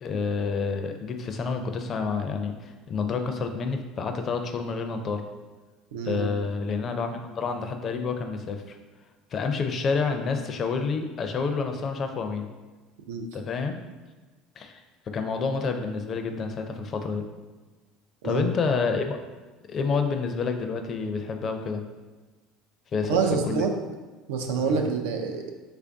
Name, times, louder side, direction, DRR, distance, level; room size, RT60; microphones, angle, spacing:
voice 1, 0.0-5.2 6.1-8.8 9.3-12.5 13.3-13.8 14.6-14.8 15.1-17.2 18.2-19.2 19.7-21.8 22.9-23.2 23.5-23.6 24.6-24.8, left 5 dB, 40° left, 6 dB, 0.4 m, -29 dB
voice 2, 5.9-6.3 13.1-13.3 18.2-18.8 23.1-23.7 24.3-25.5, right 5 dB, 90° right, 4 dB, 0.4 m, -27 dB
3.2 x 2.5 x 3.4 m, 1.2 s
supercardioid pair, 100°, 0 cm